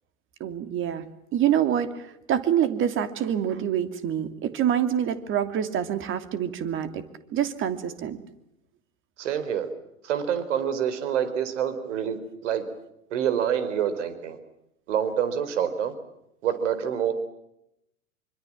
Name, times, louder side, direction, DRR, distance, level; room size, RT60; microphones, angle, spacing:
voice 1, 0.4-7.0 7.3-8.2, right 10 dB, 30° right, 11 dB, 2.8 m, -26 dB
voice 2, 9.2-9.7 10.0-12.6 13.1-14.4 14.9-15.9 16.4-17.1, right 8 dB, 60° right, 12 dB, 4.5 m, -27 dB
26.5 x 25.0 x 7.5 m, 0.83 s
figure-of-eight pair, 100°, 41 cm